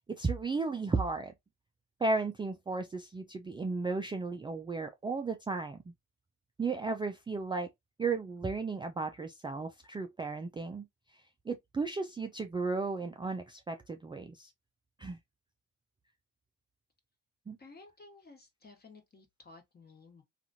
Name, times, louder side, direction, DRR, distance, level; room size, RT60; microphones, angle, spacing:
voice 1, 0.1-1.3 2.0-5.8 6.6-7.7 8.0-10.9 11.5-14.5 15.0-15.2 17.5-17.6, right 3 dB, 15° right, 0.3 m, -34 dB
voice 2, 17.6-20.2, left 3 dB, 30° left, 1.2 m, -55 dB
2.9 x 2.4 x 2.5 m
cardioid pair, 90°, 30 cm